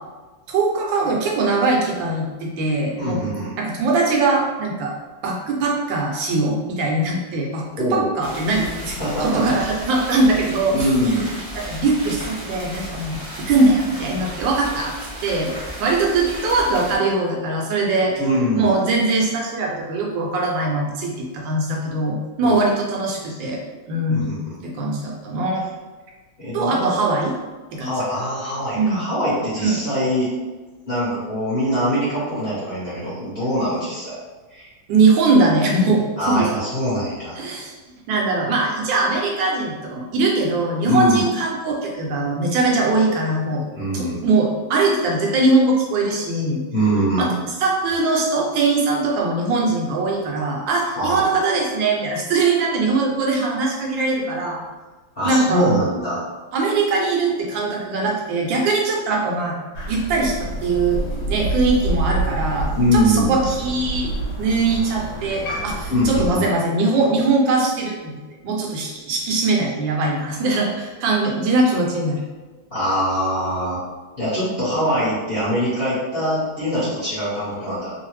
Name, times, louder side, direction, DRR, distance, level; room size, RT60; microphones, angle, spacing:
voice 1, 0.5-3.2 3.6-4.9 5.2-11.1 11.6-14.9 15.2-18.2 18.5-23.6 23.9-25.6 26.5-27.3 27.7-27.9 28.7-29.0 29.6-29.8 34.9-36.5 37.4-37.7 38.1-43.7 43.9-46.6 47.2-47.3 47.6-54.6 55.2-55.7 56.5-59.6 59.9-64.1 64.4-68.1 68.4-72.2, right 3 dB, 75° right, -1 dB, 1.2 m, -21 dB
voice 2, 3.0-3.5 7.7-8.1 9.0-9.4 10.7-11.3 18.2-18.7 22.4-22.6 24.1-24.6 26.4-27.0 27.8-30.3 30.9-34.2 34.5-34.7 36.2-37.4 40.8-41.2 43.7-44.2 46.7-47.3 51.0-51.2 55.1-56.2 62.7-63.4 65.9-66.5 72.7-73.8 74.2-77.9, equal, 40° left, -12 dB, 0.8 m, -22 dB
sound 1, 8.2-17.0, equal, 35° right, 0.8 m, -34 dB
Crow, 59.7-66.3, right 2 dB, 65° left, 1.2 m, -27 dB
3.1 x 2.0 x 3.1 m, 1.2 s
omnidirectional pair, 2.1 m